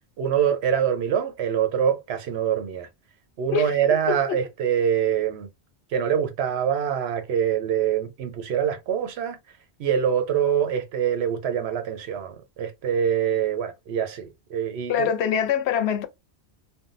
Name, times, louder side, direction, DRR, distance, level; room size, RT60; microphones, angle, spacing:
voice 1, 0.2-2.9 3.4-5.5 5.9-9.4 9.8-15.1, right 8 dB, 75° right, 0.9 m, -24 dB
voice 2, 3.5-4.4 14.9-16.1, left 8 dB, 75° left, 0.8 m, -25 dB
3.5 x 2.1 x 2.4 m
omnidirectional pair, 1.1 m